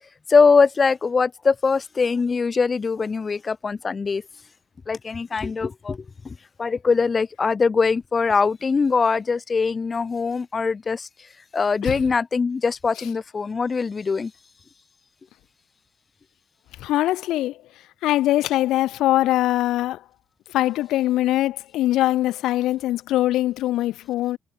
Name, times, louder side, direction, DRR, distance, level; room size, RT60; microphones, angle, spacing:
voice 1, 0.3-4.2 4.9-11.1 11.5-14.3, left 5 dB, 35° left, 0.7 m, -22 dB
voice 2, 16.8-17.5 18.0-20.0 20.5-24.4, left 15 dB, 90° left, 1.7 m, -22 dB
cardioid pair, 90°, 0 cm